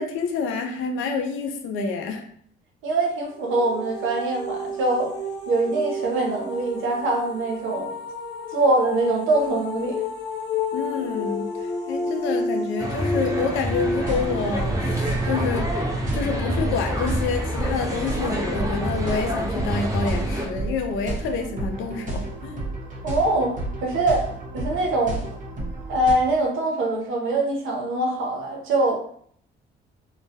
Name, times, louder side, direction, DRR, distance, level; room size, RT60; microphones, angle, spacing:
voice 1, 0.0-2.2 10.7-15.7 16.1-22.6, left 4 dB, 90° left, 4 dB, 0.4 m, -28 dB
voice 2, 2.8-5.1 5.5-7.9 8.5-10.0 23.0-23.5 23.8-24.3 24.5-25.2 25.9-29.0, right 2 dB, 85° right, 0 dB, 0.7 m, -23 dB
sound 1, 3.3-16.1, left 2 dB, 60° left, 0.7 m, -31 dB
sound 2, 12.8-20.5, equal, 15° right, 0.5 m, -27 dB
sound 3, 14.0-26.1, right 2 dB, 40° right, 0.8 m, -32 dB
2.2 x 2.1 x 2.7 m, 0.62 s
cardioid pair, 90°, 20 cm